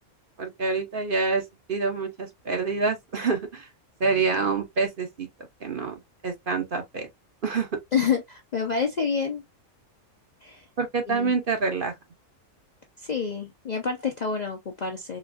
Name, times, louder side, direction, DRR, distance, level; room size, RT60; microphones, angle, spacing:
voice 1, 0.4-3.7 4.0-5.3 5.6-7.1 7.4-7.7 10.8-11.9, right 4 dB, 45° right, 0.8 m, -27 dB
voice 2, 7.9-9.4 10.4-10.6 11.1-11.3 13.0-15.2, left 6 dB, 50° left, 0.5 m, -28 dB
4.0 x 2.6 x 2.4 m
omnidirectional pair, 1.4 m